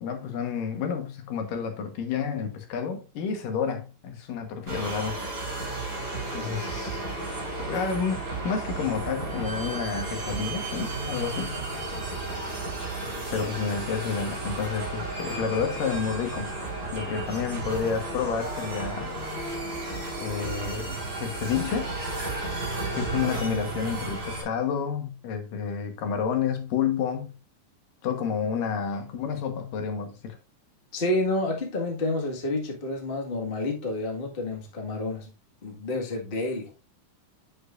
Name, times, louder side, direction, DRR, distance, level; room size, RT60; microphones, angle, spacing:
voice 1, 0.0-5.2 6.3-7.0 7.6-11.6 13.3-16.5 16.9-19.2 20.2-21.9 22.9-27.4 28.0-30.4, left 6 dB, 80° left, 3.0 m, -30 dB
sound 1, 4.7-24.4, right 2 dB, 25° right, 5.3 m, -33 dB
voice 2, 30.9-35.3 35.6-36.7, left 2 dB, 25° left, 1.2 m, -29 dB
8.5 x 7.7 x 2.6 m
omnidirectional pair, 3.8 m